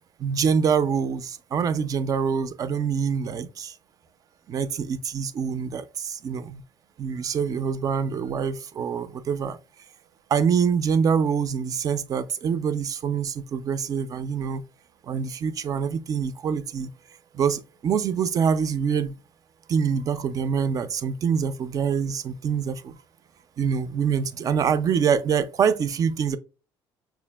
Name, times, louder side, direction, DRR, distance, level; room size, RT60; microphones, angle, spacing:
voice 1, 0.2-3.7 4.5-6.6 7.0-9.6 10.3-14.6 15.1-16.9 17.3-19.1 19.7-23.0 23.6-26.4, right 6 dB, 40° right, 0.4 m, -25 dB
5.7 x 2.4 x 2.2 m
cardioid pair, 125°, 9 cm